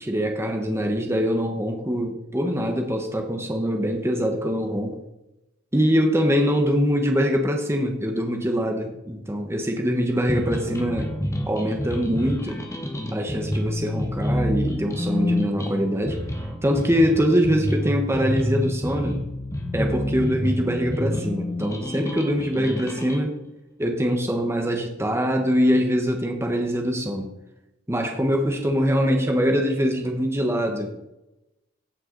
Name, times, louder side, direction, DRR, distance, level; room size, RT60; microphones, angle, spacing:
voice 1, 0.0-4.9 5.7-11.1 11.5-12.6 13.1-16.2 16.6-19.2 19.7-23.3 23.8-27.3 27.9-31.1, equal, 15° right, 3 dB, 1.1 m, -23 dB
sound 1, 10.3-23.2, left 1 dB, 15° left, 1.2 m, -28 dB
17.0 x 5.7 x 4.0 m, 0.93 s
head